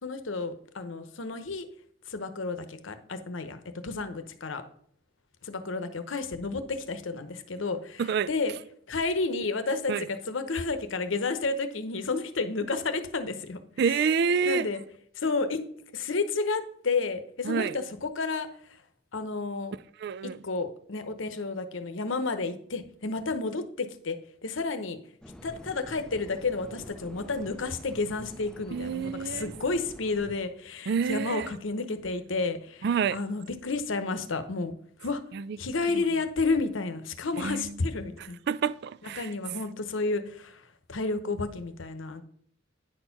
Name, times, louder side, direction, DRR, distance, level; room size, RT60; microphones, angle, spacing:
voice 1, 0.0-1.7 2.1-4.6 5.4-8.5 8.9-14.1 14.4-14.8 15.1-15.6 15.9-18.8 19.1-19.7 20.2-25.0 25.4-34.7 35.0-35.2 35.6-38.4 39.0-42.2, left 3 dB, 75° left, 0.9 m, -31 dB
voice 2, 8.0-8.3 9.9-10.0 13.8-14.7 17.4-17.8 20.0-20.4 28.7-29.5 30.9-31.5 32.8-33.2 35.3-35.6 35.9-36.0 37.4-37.8 38.5-39.3, right 6 dB, 55° right, 0.3 m, -28 dB
sound 1, 25.2-30.5, equal, 5° left, 0.5 m, -47 dB
9.7 x 4.4 x 5.8 m
head